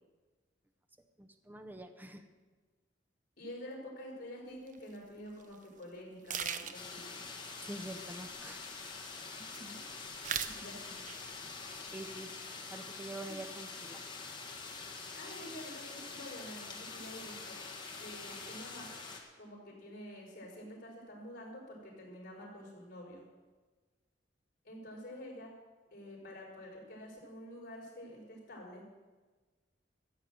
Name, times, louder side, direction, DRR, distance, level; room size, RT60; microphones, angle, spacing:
voice 1, 1.2-2.2 7.6-8.7 11.9-12.3 12.7-14.0, right 1 dB, 10° right, 7 dB, 0.7 m, -46 dB
voice 2, 3.4-7.2 9.3-9.8 10.4-11.0 13.2-13.4 15.1-17.6 17.9-18.9 19.4-23.3 24.6-25.5 25.9-28.8, equal, 55° left, -3 dB, 4.7 m, -48 dB
sound 1, 4.7-4.8 5.4-5.6 5.8-5.9 6.3-7.0 7.9-8.8 9.1-9.8 10.1-10.6 10.9-11.4 11.7-12.4, right 7 dB, 45° right, 0.7 m, -39 dB
sound 2, 6.7-19.2, left 4 dB, 25° left, 1.9 m, -45 dB
14.5 x 8.3 x 7.7 m, 1.3 s
head